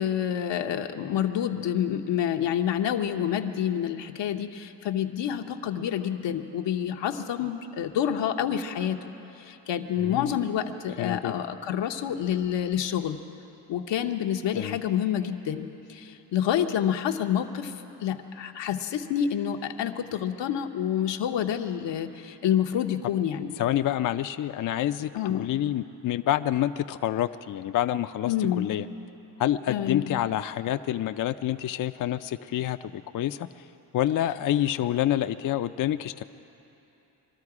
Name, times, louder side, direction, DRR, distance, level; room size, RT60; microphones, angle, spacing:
voice 1, 0.0-9.1 9.4-13.2 13.7-17.7 18.0-23.5 25.1-25.5 28.2-28.7 29.7-30.1, left 9 dB, 85° left, 4 dB, 0.9 m, -28 dB
voice 2, 10.0-10.3 11.0-11.3 14.5-14.8 23.6-28.9 29.4-33.5 33.9-36.2, left 12 dB, 50° left, 10 dB, 0.4 m, -27 dB
22.5 x 13.0 x 4.8 m, 3.0 s
cardioid pair, 65°, 43 cm